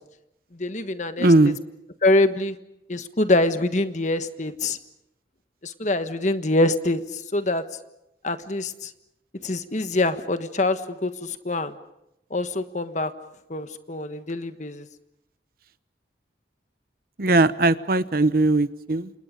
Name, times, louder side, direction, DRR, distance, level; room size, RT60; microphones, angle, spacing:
voice 1, 0.5-1.3 2.0-2.6 2.9-4.8 5.6-7.6 8.2-8.9 9.4-11.8 12.3-13.1 13.5-14.9, left 2 dB, 40° left, 10 dB, 1.3 m, -24 dB
voice 2, 1.2-1.6 17.2-19.1, right 2 dB, 50° right, 14 dB, 0.9 m, -19 dB
30.0 x 27.0 x 5.2 m, 0.85 s
head